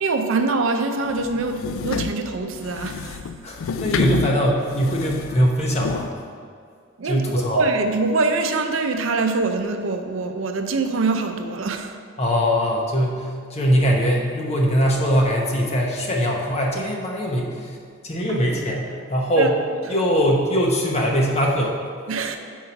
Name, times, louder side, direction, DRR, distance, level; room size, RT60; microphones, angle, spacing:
voice 1, 0.0-3.3 7.0-7.2 7.5-12.0 18.3-18.4 19.4-19.5 22.1-22.4, right 3 dB, 75° right, 5 dB, 0.6 m, -24 dB
sound 1, 1.1-6.1, left 6 dB, 80° left, 0.3 m, -30 dB
voice 2, 3.4-6.1 7.1-7.7 12.2-17.8 18.0-19.5 19.9-21.8, equal, 30° left, -1 dB, 0.9 m, -21 dB
5.5 x 4.7 x 5.7 m, 2.2 s
head